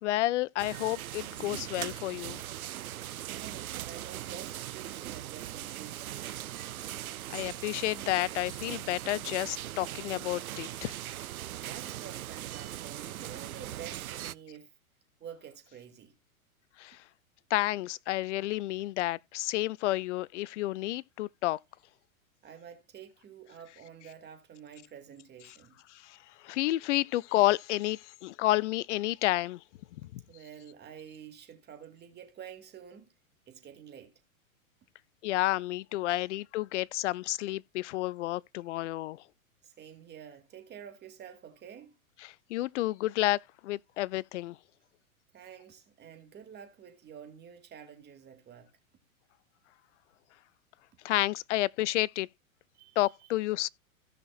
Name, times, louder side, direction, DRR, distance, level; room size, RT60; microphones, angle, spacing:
voice 1, 0.0-2.4 7.3-10.9 16.8-17.0 17.5-21.6 26.0-26.2 26.4-29.6 30.0-30.2 35.2-39.2 42.5-44.6 51.0-52.3 53.0-53.7, left 16 dB, 55° left, 0.5 m, -30 dB
sound 1, 0.6-14.3, right 13 dB, 80° right, 0.5 m, -40 dB
voice 2, 3.3-6.4 11.6-14.7 15.2-16.2 22.4-25.8 30.3-33.1 33.5-34.1 39.6-42.0 45.3-48.7 52.7-53.3, right 8 dB, 25° right, 2.4 m, -49 dB
16.5 x 5.8 x 2.4 m
hypercardioid pair, 110°, 42 cm